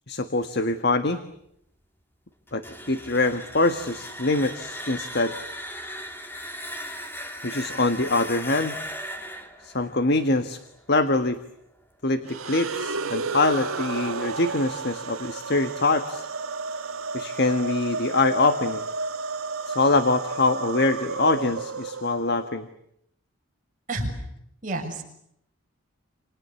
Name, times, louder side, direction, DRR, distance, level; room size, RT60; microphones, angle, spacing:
voice 1, 0.1-1.2 2.5-5.3 7.4-8.8 9.6-10.6 10.9-11.4 12.0-16.3 17.1-18.9 19.7-22.7, left 2 dB, 50° left, 9 dB, 1.5 m, -24 dB
sound 1, 2.5-11.3, equal, 10° left, 2.8 m, -38 dB
sound 2, 12.2-22.5, right 4 dB, 80° right, 1.7 m, -32 dB
voice 2, 24.6-25.0, right 2 dB, 40° right, 1 dB, 6.9 m, -29 dB
29.0 x 28.5 x 7.1 m, 0.76 s
head